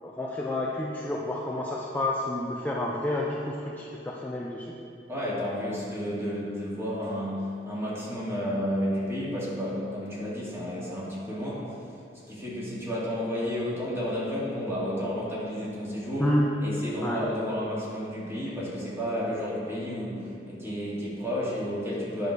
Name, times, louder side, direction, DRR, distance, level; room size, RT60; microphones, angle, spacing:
voice 1, 0.0-4.8 16.2-16.4 17.0-17.2, left 1 dB, 10° left, -3 dB, 0.6 m, -29 dB
voice 2, 5.1-11.7 12.3-16.3 16.6-22.3, equal, 15° right, -7 dB, 2.3 m, -31 dB
9.6 x 5.0 x 6.6 m, 2.6 s
head